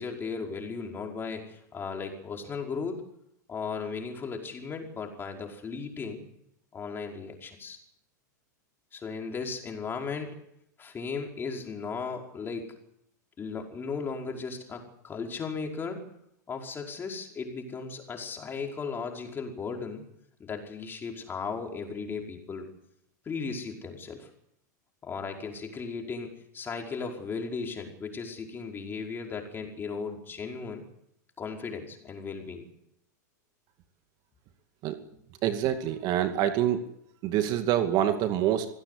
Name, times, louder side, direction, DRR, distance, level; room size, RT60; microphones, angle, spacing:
voice 1, 0.0-3.1 3.5-6.2 6.7-7.8 8.9-10.4 10.8-12.7 13.4-16.0 16.5-20.0 20.4-22.7 23.2-24.3 25.0-30.8 31.4-32.6 35.1-35.2, left 5 dB, 20° left, 2 dB, 5.3 m, -36 dB
voice 2, 35.4-36.8 37.2-38.7, right 11 dB, 45° right, 8 dB, 2.4 m, -26 dB
25.5 x 16.5 x 8.4 m, 0.76 s
hypercardioid pair, 110°, 10 cm